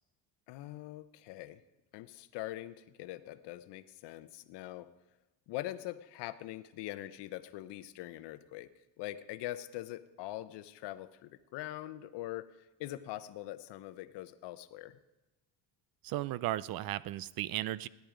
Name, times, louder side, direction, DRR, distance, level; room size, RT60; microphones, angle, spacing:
voice 1, 0.5-1.6 1.9-4.9 5.5-8.7 9.0-12.5 12.8-15.0, left 15 dB, 75° left, 14 dB, 0.9 m, -43 dB
voice 2, 16.0-17.9, right 14 dB, 60° right, 19 dB, 0.5 m, -35 dB
17.0 x 10.5 x 5.1 m, 1.1 s
cardioid pair, 140°, 41 cm